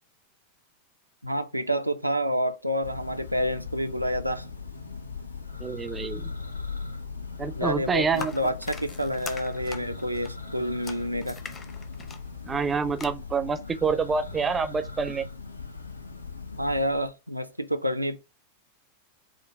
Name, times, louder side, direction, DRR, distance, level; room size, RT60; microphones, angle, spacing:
voice 1, 1.2-4.5 7.6-11.4 16.5-18.2, equal, 90° right, 0.4 m, -28 dB
Church bell, 2.8-17.1, left 4 dB, 80° left, 0.5 m, -39 dB
voice 2, 5.6-6.3 7.4-8.5 12.4-15.3, right 5 dB, 15° right, 0.4 m, -27 dB
sound 1, 8.1-13.1, left 5 dB, 25° left, 0.6 m, -42 dB
5.1 x 2.2 x 4.7 m
figure-of-eight pair, 90°, 0 cm